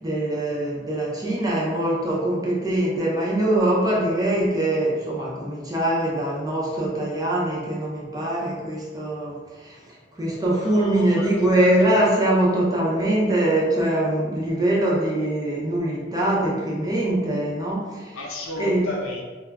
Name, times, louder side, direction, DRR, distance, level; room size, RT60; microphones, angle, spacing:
voice 1, 0.0-18.2 18.6-18.9, right 1 dB, 20° right, -4 dB, 0.5 m, -23 dB
voice 2, 10.6-11.3 11.6-11.9 18.1-19.2, left 2 dB, 90° left, -2 dB, 0.6 m, -33 dB
2.2 x 2.1 x 3.4 m, 1.4 s
head